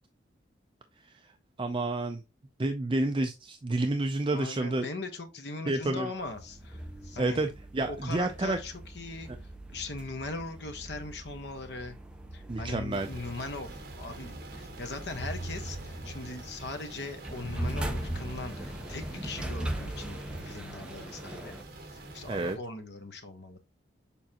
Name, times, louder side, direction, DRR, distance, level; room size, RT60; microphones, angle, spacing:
voice 1, 1.0-1.3 1.6-2.2 2.6-4.9 5.7-6.1 7.2-8.6 12.5-13.1 22.3-22.6, right 2 dB, 25° right, 0.5 m, -30 dB
voice 2, 4.3-7.4 7.9-9.3 9.7-12.0 12.3-21.6 21.9-23.6, left 3 dB, 60° left, 1.2 m, -40 dB
sound 1, 6.2-21.6, right 1 dB, 5° right, 0.9 m, -40 dB
sound 2, 12.9-22.6, right 2 dB, 55° right, 1.7 m, -46 dB
7.1 x 5.1 x 2.9 m
head